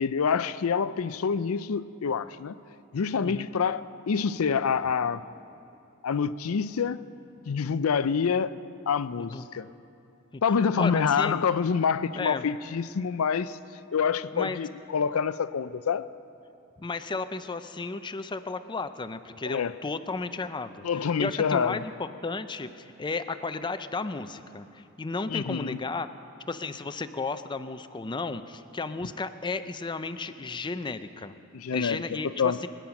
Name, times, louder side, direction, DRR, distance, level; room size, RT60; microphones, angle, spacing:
voice 1, 0.0-2.6 2.9-5.2 6.0-7.0 7.5-8.5 8.9-9.7 10.4-13.6 13.9-16.1 19.4-19.7 20.8-21.8 25.3-25.8 31.5-32.6, left 6 dB, 90° left, 15 dB, 0.5 m, -27 dB
voice 2, 10.3-11.3 12.2-12.4 14.3-14.6 16.8-26.1 26.5-31.4 31.7-32.7, left 3 dB, 20° left, 10 dB, 0.5 m, -34 dB
23.5 x 9.2 x 5.9 m, 2.7 s
head